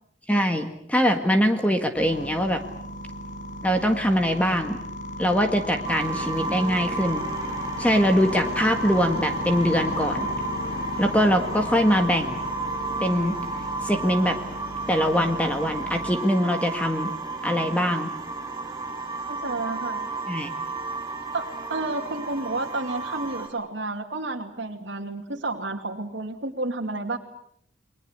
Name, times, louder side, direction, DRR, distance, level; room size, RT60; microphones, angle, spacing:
voice 1, 0.3-2.6 3.6-4.8 5.2-7.2 7.8-10.3 11.0-12.4 13.0-13.4 13.8-14.4 14.9-17.1 17.4-18.1 20.3-20.5, equal, 5° left, 5 dB, 1.7 m, -23 dB
sound 1, 2.0-16.2, left 1 dB, 40° left, 5.3 m, -34 dB
sound 2, 5.8-23.5, right 3 dB, 20° right, 7.5 m, -33 dB
voice 2, 19.3-20.1 21.3-27.2, right 2 dB, 65° right, -1 dB, 2.5 m, -31 dB
29.5 x 23.0 x 8.0 m, 0.73 s
head